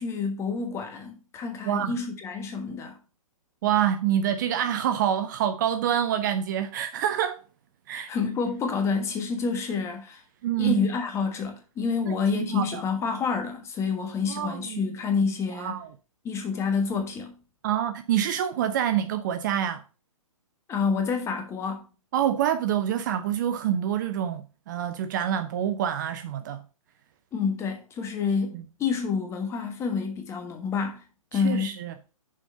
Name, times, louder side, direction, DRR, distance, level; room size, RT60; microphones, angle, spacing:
voice 1, 0.0-3.0 7.9-10.2 10.6-15.8 16.2-17.4 20.7-21.9 27.3-31.0 31.3-31.8, left 5 dB, 15° left, 1.3 m, -28 dB
voice 2, 1.6-2.0 3.6-7.4 7.9-8.1 10.4-10.8 12.1-12.8 14.2-14.8 15.5-15.9 17.6-19.8 22.1-26.6 28.5-28.6 31.3-31.9, right 10 dB, 35° right, 0.6 m, -27 dB
6.5 x 5.2 x 5.4 m
figure-of-eight pair, 125°, 18 cm